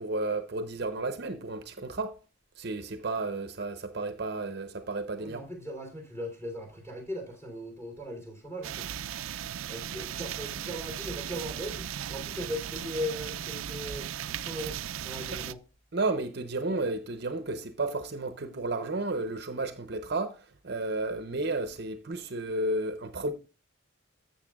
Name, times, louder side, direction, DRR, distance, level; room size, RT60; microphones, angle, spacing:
voice 1, 0.0-2.2 2.6-5.4 15.9-23.3, right 2 dB, 50° right, 0.7 m, -32 dB
voice 2, 5.2-8.9 9.7-15.6, equal, 10° left, 3.0 m, -38 dB
sound 1, 8.6-15.5, right 9 dB, 85° right, 0.4 m, -37 dB
13.5 x 7.4 x 2.3 m
head